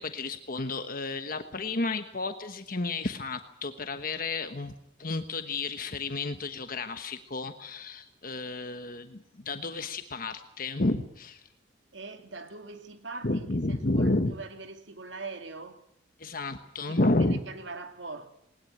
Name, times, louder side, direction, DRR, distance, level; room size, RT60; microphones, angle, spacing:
voice 1, 0.0-4.7 5.0-11.4 13.2-14.3 16.2-17.4, left 2 dB, 50° left, 1.2 m, -31 dB
voice 2, 11.9-15.8 16.9-18.3, right 3 dB, 75° right, 2.7 m, -42 dB
20.0 x 20.0 x 8.9 m
head